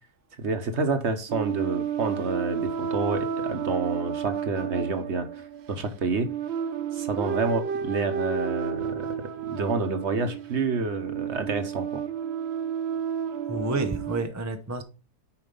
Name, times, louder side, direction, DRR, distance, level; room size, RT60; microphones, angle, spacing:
voice 1, 0.4-5.4 5.7-6.3 6.9-9.1 9.5-12.0, right 4 dB, 50° right, 8 dB, 1.1 m, -28 dB
sound 1, 1.3-14.2, right 8 dB, 65° right, 0.6 m, -32 dB
voice 2, 13.5-14.8, right 2 dB, 20° right, 6 dB, 0.5 m, -29 dB
7.1 x 4.9 x 5.3 m, 0.34 s
omnidirectional pair, 1.7 m